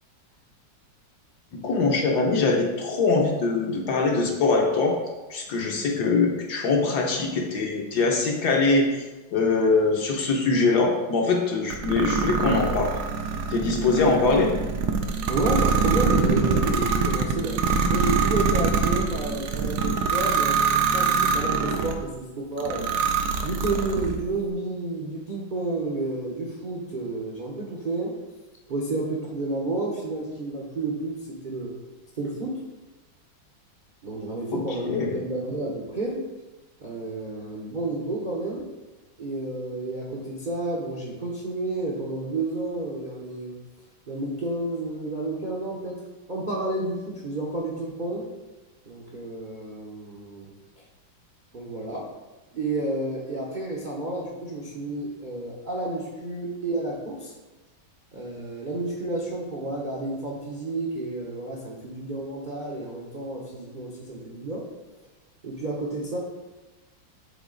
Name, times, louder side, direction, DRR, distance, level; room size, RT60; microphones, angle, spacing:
voice 1, 1.5-5.0 5.3-9.0 9.3-12.9 13.5-14.5 34.8-35.2, left 3 dB, 65° left, 0 dB, 1.2 m, -23 dB
sound 1, 11.7-22.0 22.6-24.2, right 5 dB, 70° right, 1.0 m, -24 dB
voice 2, 15.3-17.6 17.9-22.9 23.4-28.2 28.7-31.7 32.1-32.6 34.0-36.2 36.8-38.6 39.2-43.5 44.1-46.0 46.3-48.3 48.9-50.8 51.5-52.1 52.5-57.3 58.1-64.6 65.4-66.2, right 2 dB, 50° right, -4 dB, 0.5 m, -30 dB
7.0 x 4.1 x 3.8 m, 1.2 s
omnidirectional pair, 2.2 m